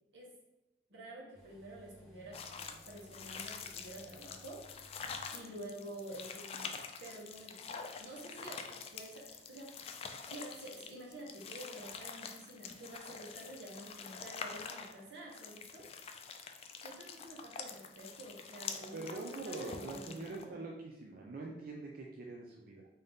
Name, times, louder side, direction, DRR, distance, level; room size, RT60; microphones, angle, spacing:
voice 1, 0.9-4.6 5.3-6.7 7.0-9.8 10.3-15.9 16.8-20.6, right 1 dB, 85° right, -2 dB, 1.1 m, -49 dB
sound 1, 1.3-5.8 6.0-6.1, equal, ahead, 0.9 m, -60 dB
sound 2, 2.3-20.4, left 5 dB, 35° left, 0.3 m, -46 dB
voice 2, 18.9-22.9, right 3 dB, 55° right, -1 dB, 0.4 m, -44 dB
3.8 x 2.7 x 3.5 m, 1.0 s
head